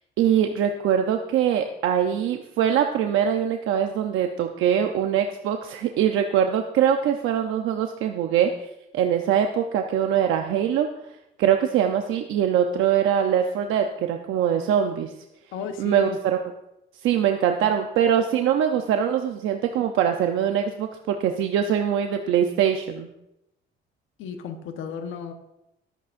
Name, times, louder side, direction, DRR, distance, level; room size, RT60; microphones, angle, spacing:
voice 1, 0.2-8.5 8.9-10.9 11.4-15.1 15.8-16.4 17.0-23.1, right 9 dB, 90° right, 5 dB, 0.8 m, -23 dB
voice 2, 15.5-16.2 24.2-25.3, left 6 dB, 90° left, 5 dB, 1.2 m, -33 dB
24.0 x 8.4 x 2.6 m, 0.86 s
cardioid pair, 90°, 20 cm